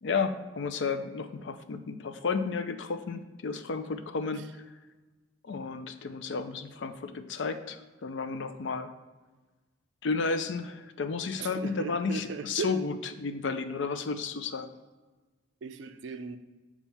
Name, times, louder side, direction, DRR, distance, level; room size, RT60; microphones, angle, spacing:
voice 1, 0.0-4.6 5.4-8.9 10.0-14.7, left 4 dB, 60° left, 9 dB, 0.4 m, -32 dB
voice 2, 11.4-12.8 15.6-16.4, right 5 dB, 65° right, 8 dB, 0.4 m, -37 dB
7.2 x 2.4 x 5.4 m, 1.3 s
head